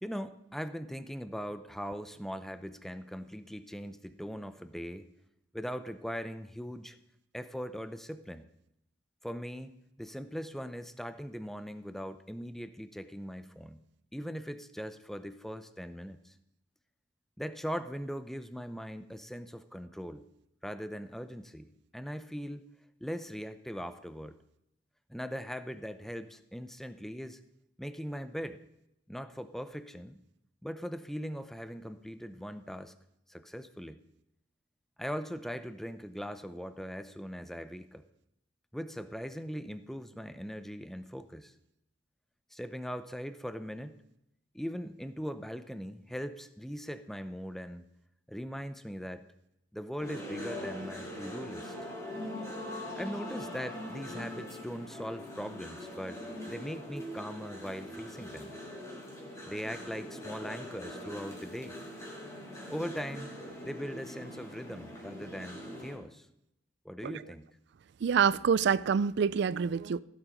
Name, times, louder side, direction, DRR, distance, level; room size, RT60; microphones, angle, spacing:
voice 1, 0.0-5.1 5.5-7.0 7.3-8.4 9.2-13.8 14.1-16.3 17.4-20.3 20.6-22.7 23.0-24.4 25.1-27.4 27.8-28.6 29.1-30.2 30.6-32.9 33.3-34.0 35.0-38.0 38.7-41.5 42.5-44.0 44.5-47.9 48.3-49.2 49.7-51.7 53.0-56.2 56.5-58.6 59.4-61.7 62.7-63.3 63.6-66.3 66.8-67.5, equal, ahead, 0.6 m, -40 dB
sound 1, 50.0-66.0, left 1 dB, 15° left, 3.1 m, -42 dB
voice 2, 68.0-70.0, right 6 dB, 65° right, 0.4 m, -26 dB
16.0 x 7.4 x 5.1 m
head